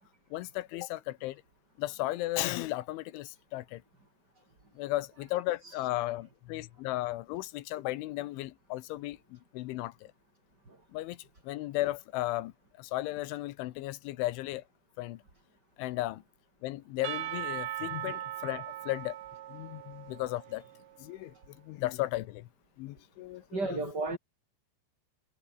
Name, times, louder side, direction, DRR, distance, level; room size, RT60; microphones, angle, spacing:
voice 1, 0.3-1.4 1.8-3.8 4.8-9.9 10.9-11.2 11.5-12.5 12.8-14.6 15.0-15.2 15.8-16.2 16.6-19.1 19.5-20.6 21.0-21.3 21.7-22.5 22.8-23.8, left 17 dB, 90° left, 3.5 m, -35 dB
Percussion / Church bell, 17.0-21.0, right 13 dB, 70° right, 3.7 m, -39 dB
voice 2, 23.5-24.2, right 3 dB, 20° right, 6.7 m, -34 dB
omnidirectional pair, 5.4 m